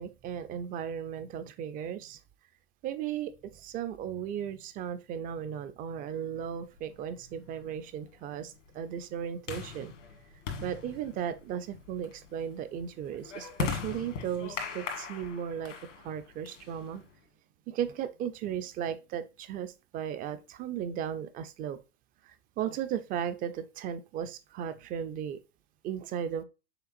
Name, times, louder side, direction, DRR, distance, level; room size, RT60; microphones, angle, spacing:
voice 1, 0.0-2.2 2.8-9.9 10.6-15.7 16.0-17.0 17.7-21.8 22.3-25.4 25.8-26.4, right 9 dB, 25° right, 0.4 m, -36 dB
sound 1, 6.8-17.2, left 5 dB, 80° left, 1.5 m, -40 dB
5.8 x 3.5 x 2.4 m
hypercardioid pair, 115°, 36 cm